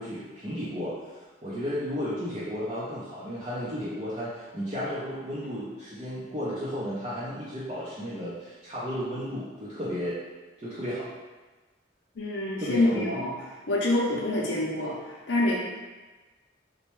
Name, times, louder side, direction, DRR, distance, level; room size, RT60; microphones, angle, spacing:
voice 1, 0.0-10.2 10.6-11.1 12.6-13.1, equal, 30° right, -10 dB, 0.5 m, -33 dB
voice 2, 12.2-13.3 13.7-15.6, left 1 dB, 85° left, -4 dB, 0.6 m, -26 dB
4.1 x 2.2 x 3.0 m, 1.2 s
head